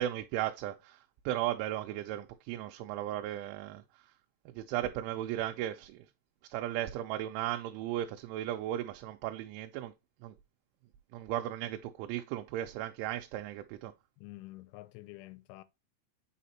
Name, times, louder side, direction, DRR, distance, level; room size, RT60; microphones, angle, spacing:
voice 1, 0.0-4.0 4.6-6.1 6.5-9.9 10.2-10.3 11.1-13.9, right 13 dB, 85° right, 3.0 m, -36 dB
voice 2, 14.2-15.6, left 19 dB, 90° left, 3.0 m, -48 dB
8.4 x 5.0 x 2.7 m
omnidirectional pair, 5.4 m